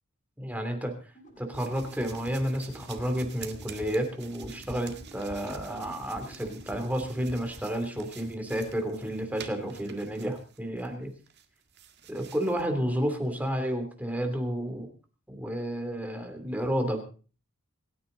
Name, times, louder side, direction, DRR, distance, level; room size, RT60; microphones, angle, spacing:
voice 1, 0.4-0.9 1.4-11.1 12.1-14.9 15.3-17.1, equal, 5° right, 5 dB, 3.0 m, -31 dB
sound 1, 1.1-7.5, right 1 dB, 40° left, 6.4 m, -53 dB
sound 2, 1.5-10.9 11.3-12.7, right 5 dB, 55° right, 1.9 m, -47 dB
27.0 x 9.7 x 4.0 m, 0.38 s
head